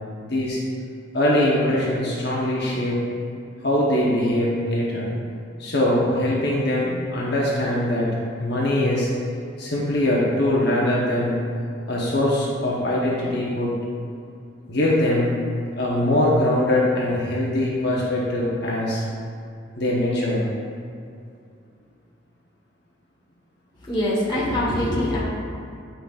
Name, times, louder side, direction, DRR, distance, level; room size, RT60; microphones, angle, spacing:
voice 1, 1.1-3.0 3.6-5.1 5.6-8.1 8.4-9.1 9.6-11.4 11.9-13.7 14.7-15.3 15.8-19.0 19.8-20.4, left 1 dB, 60° left, -5 dB, 0.9 m, -22 dB
voice 2, 23.8-25.2, left 1 dB, 25° left, -6 dB, 1.3 m, -23 dB
8.5 x 5.9 x 2.4 m, 2.4 s
head